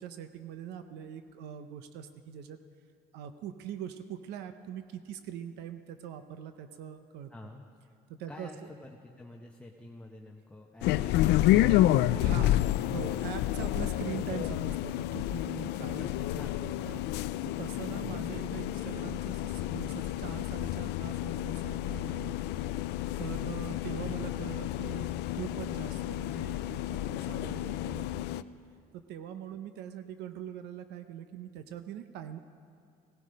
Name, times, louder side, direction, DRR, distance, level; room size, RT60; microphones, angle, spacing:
voice 1, 0.0-2.6 3.1-7.3 8.1-8.5 12.2-17.0 17.6-22.4 23.2-28.4 29.1-32.4, right 9 dB, 85° right, 9 dB, 0.7 m, -42 dB
voice 2, 7.3-7.6 8.3-12.6 13.0-13.2 16.0-16.1 16.3-16.7 17.9-18.3 24.0-24.2, left 2 dB, 5° left, 0 dB, 1.0 m, -48 dB
sound 1, 10.8-28.4, left 14 dB, 80° left, 0.4 m, -30 dB
17.5 x 13.5 x 5.2 m, 2.3 s
cardioid pair, 110°, 17 cm